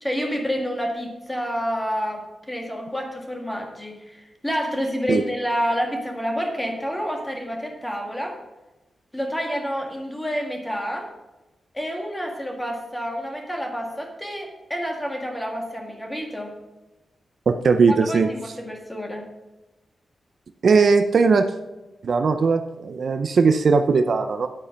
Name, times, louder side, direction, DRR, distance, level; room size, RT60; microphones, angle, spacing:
voice 1, 0.0-8.4 9.1-11.1 11.7-16.5 17.9-19.2, equal, 10° left, 2 dB, 1.7 m, -28 dB
voice 2, 17.5-18.3 20.6-21.5 22.0-24.5, right 4 dB, 50° right, 8 dB, 0.5 m, -18 dB
9.8 x 8.7 x 5.2 m, 1.1 s
wide cardioid pair, 180°, 0 cm